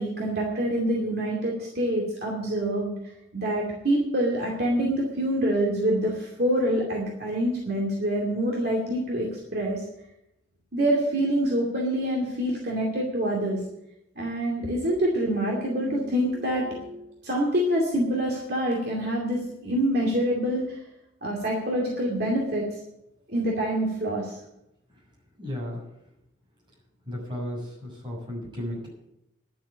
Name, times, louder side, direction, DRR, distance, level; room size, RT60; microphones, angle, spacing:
voice 1, 0.0-2.9 3.3-9.8 10.7-13.6 14.2-20.8 21.2-22.7 23.3-24.3, right 1 dB, 50° right, -3 dB, 2.5 m, -26 dB
voice 2, 25.4-25.8 27.0-28.9, left 1 dB, 25° right, -4 dB, 6.7 m, -34 dB
11.0 x 7.6 x 9.7 m, 0.85 s
head